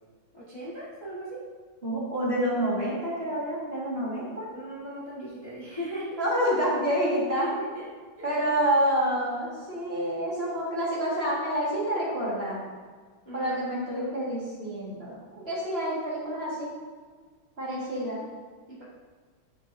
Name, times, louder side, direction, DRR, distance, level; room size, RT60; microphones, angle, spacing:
voice 1, 0.3-1.4 4.5-6.2 7.3-7.9 8.2-8.3 13.2-13.5 13.8-14.1 17.6-18.2 18.7-18.8, equal, 15° left, -8 dB, 1.4 m, -38 dB
voice 2, 1.8-4.5 6.2-7.5 8.2-12.6 13.3-16.7 17.6-18.2, equal, 30° right, -7 dB, 2.0 m, -28 dB
9.7 x 7.3 x 2.7 m, 1.5 s
omnidirectional pair, 2.2 m